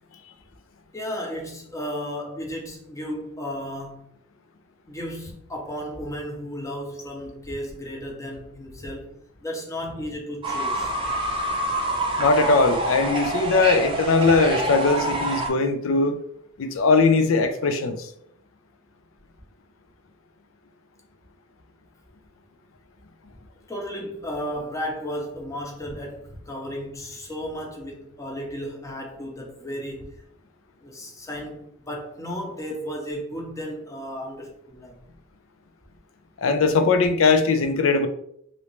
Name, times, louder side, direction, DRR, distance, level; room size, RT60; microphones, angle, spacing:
voice 1, 0.9-4.1 4.9-10.9 23.7-30.1 30.8-35.0, equal, 15° left, 0.7 m, -34 dB
Fowl / Bird, 10.4-15.5, right 1 dB, 25° right, 0.5 m, -26 dB
voice 2, 12.2-16.2 16.6-18.1 36.4-38.1, left 3 dB, 90° left, 0.5 m, -20 dB
3.1 x 2.6 x 3.0 m
head